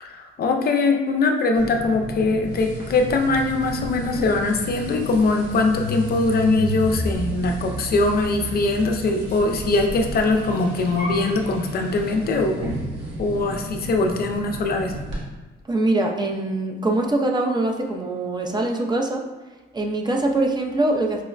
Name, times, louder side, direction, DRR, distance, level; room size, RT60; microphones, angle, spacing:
voice 1, 0.0-12.7 13.2-15.0, left 3 dB, 50° left, 4 dB, 0.4 m, -22 dB
sound 1, 1.6-15.2, right 1 dB, 65° right, 1.0 m, -32 dB
voice 2, 15.7-19.2 19.7-21.2, right 2 dB, 20° right, 1 dB, 0.4 m, -23 dB
4.8 x 2.0 x 2.4 m, 1.3 s
cardioid pair, 90°, 20 cm